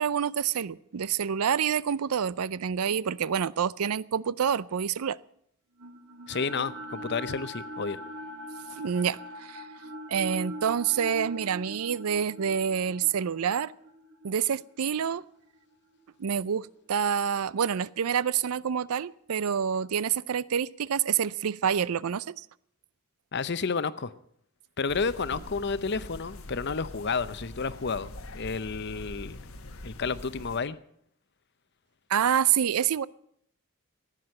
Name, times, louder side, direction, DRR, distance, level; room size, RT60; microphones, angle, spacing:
voice 1, 0.0-5.2 8.7-9.7 10.1-13.7 14.2-15.3 16.2-22.5 32.1-33.1, right 8 dB, 90° right, 0.5 m, -27 dB
sound 1, 5.8-16.0, equal, 65° right, 1.9 m, -42 dB
voice 2, 6.3-8.0 23.3-24.1 24.8-29.4 29.8-30.8, left 5 dB, 50° left, 0.7 m, -31 dB
sound 2, 24.9-30.6, left 1 dB, 70° left, 1.3 m, -44 dB
15.5 x 10.0 x 7.7 m
head